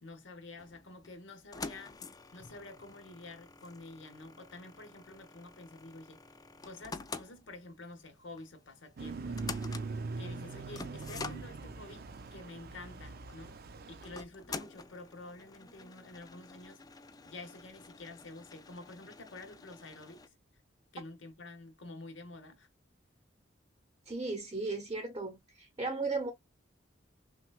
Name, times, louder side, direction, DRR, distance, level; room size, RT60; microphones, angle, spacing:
voice 1, 0.0-2.0 2.3-6.2 6.6-9.6 10.2-13.6 13.8-16.8 17.2-20.3 20.9-22.7, left 2 dB, 70° left, 1.0 m, -49 dB
sound 1, 0.6-20.3, left 4 dB, 20° left, 0.3 m, -48 dB
sound 2, 9.0-14.2, right 3 dB, 55° right, 0.5 m, -41 dB
voice 2, 24.1-26.3, right 3 dB, 25° right, 0.8 m, -36 dB
5.9 x 2.2 x 2.3 m
head